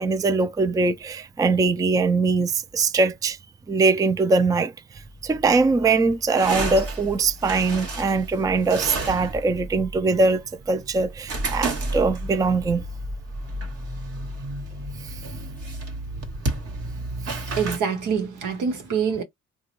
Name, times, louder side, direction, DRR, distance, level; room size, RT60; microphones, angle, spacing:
voice 1, 0.0-3.4 3.7-12.8 15.0-15.2 17.2-17.4, right 3 dB, 10° right, 0.4 m, -22 dB
sound 1, 5.0-17.8, right 2 dB, 50° right, 1.1 m, -32 dB
voice 2, 17.6-19.2, right 6 dB, 80° right, 1.1 m, -25 dB
3.1 x 2.2 x 3.1 m
cardioid pair, 90°, 30 cm